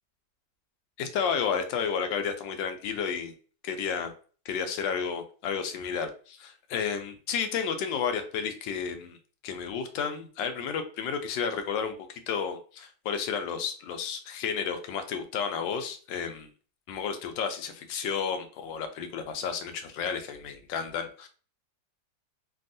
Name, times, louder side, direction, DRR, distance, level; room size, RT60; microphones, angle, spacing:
voice 1, 1.0-3.3 3.6-4.1 4.4-9.2 9.4-16.5 16.9-21.3, left 6 dB, 85° left, 7 dB, 1.3 m, -32 dB
3.4 x 2.3 x 2.5 m, 0.39 s
omnidirectional pair, 1.9 m